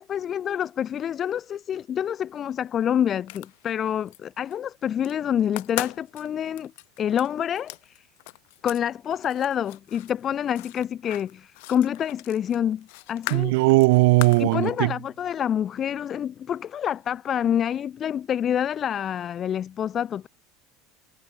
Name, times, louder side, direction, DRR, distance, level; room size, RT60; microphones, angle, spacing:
voice 1, 0.0-6.7 7.0-8.0 8.6-13.5 14.4-20.3, left 9 dB, 30° left, 5.0 m, -27 dB
sound 1, 3.3-4.2 4.5-5.1 5.4-8.8 9.1-14.5, left 28 dB, 70° left, 5.5 m, -39 dB
voice 2, 13.3-14.9, right 25 dB, 75° right, 1.8 m, -18 dB
supercardioid pair, 150°, 0 cm